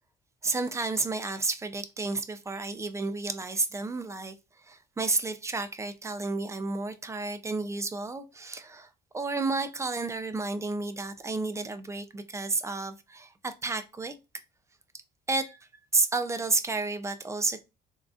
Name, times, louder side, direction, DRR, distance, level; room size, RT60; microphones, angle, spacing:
voice 1, 0.4-4.3 4.7-8.9 9.1-14.1 15.3-15.7 15.9-17.6, right 3 dB, 15° right, 0.4 m, -31 dB
3.6 x 2.4 x 2.4 m
cardioid pair, 110°, 17 cm